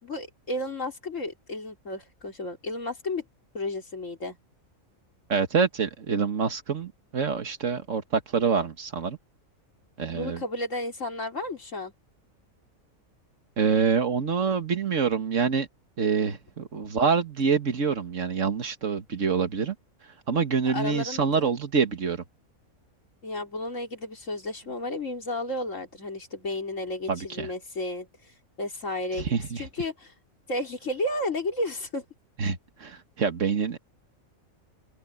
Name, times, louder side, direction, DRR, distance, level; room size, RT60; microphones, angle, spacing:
voice 1, 0.0-3.2 3.5-4.4 10.1-11.9 20.7-21.5 23.2-28.1 28.6-30.1 30.5-32.0, left 2 dB, 65° left, 3.8 m, -32 dB
voice 2, 5.3-9.2 10.0-10.4 13.6-15.7 16.0-19.7 20.3-22.2 27.1-27.5 29.2-29.6 32.4-33.8, right 5 dB, 65° right, 1.9 m, -26 dB
open air
omnidirectional pair, 1.4 m